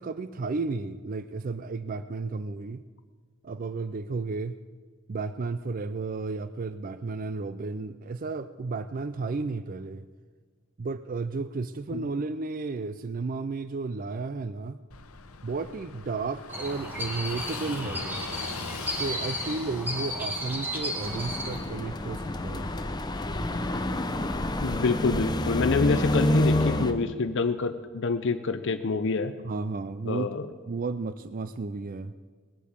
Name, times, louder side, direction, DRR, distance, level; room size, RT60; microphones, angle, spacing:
voice 1, 0.0-2.8 3.4-4.6 5.1-10.1 10.8-14.8 15.4-18.3 19.0-22.7 29.4-30.3 30.7-32.1, right 3 dB, 40° right, 13 dB, 0.4 m, -33 dB
Car passing by / Engine, 14.9-22.8, left 4 dB, 85° left, 0.9 m, -42 dB
sound 1, 16.5-21.6, equal, 10° right, 2.2 m, -34 dB
sound 2, 21.0-26.9, left 1 dB, 20° left, 0.8 m, -28 dB
voice 2, 24.6-29.3 30.1-30.5, left 4 dB, 60° left, 9 dB, 0.6 m, -27 dB
20.0 x 8.4 x 7.2 m, 1.5 s
head